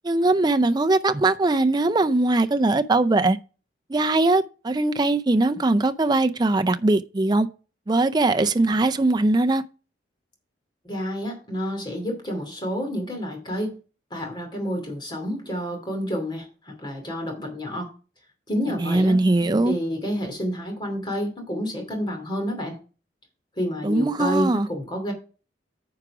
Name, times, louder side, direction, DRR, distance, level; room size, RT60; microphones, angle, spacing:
voice 1, 0.0-3.4 3.9-7.5 7.9-9.6 18.8-19.7 23.8-24.7, right 2 dB, 25° right, 0.5 m, -21 dB
voice 2, 10.8-13.7 14.1-17.9 18.5-19.2 19.6-22.8 23.6-25.1, equal, 25° left, 2.6 m, -29 dB
9.6 x 4.9 x 4.8 m
head